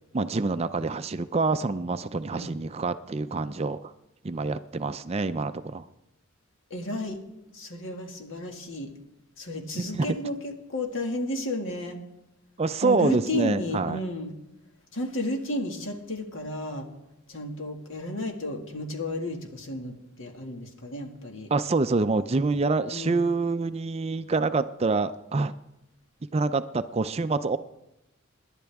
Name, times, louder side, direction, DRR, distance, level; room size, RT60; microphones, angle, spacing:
voice 1, 0.1-3.9 4.2-5.8 10.0-10.2 12.6-14.0 21.5-25.5 26.3-27.6, right 3 dB, 30° right, 12 dB, 0.4 m, -26 dB
voice 2, 6.7-7.2 7.5-8.9 9.4-12.0 12.8-14.3 14.9-16.9 17.3-21.5 22.9-23.2, left 1 dB, 65° left, 3 dB, 2.0 m, -32 dB
27.0 x 11.0 x 3.5 m, 0.91 s
head